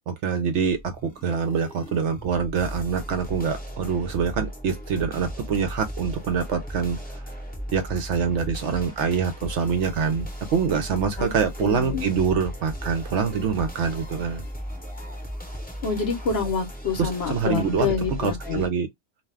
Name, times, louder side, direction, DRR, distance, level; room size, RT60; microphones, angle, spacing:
voice 1, 0.1-7.0 7.7-14.5 17.0-17.9 18.2-18.9, right 6 dB, 65° right, 0.8 m, -25 dB
sound 1, 0.5-18.7, equal, 10° left, 0.7 m, -37 dB
voice 2, 11.6-12.0 15.8-18.6, left 5 dB, 55° left, 0.9 m, -27 dB
2.5 x 2.3 x 3.2 m
omnidirectional pair, 1.4 m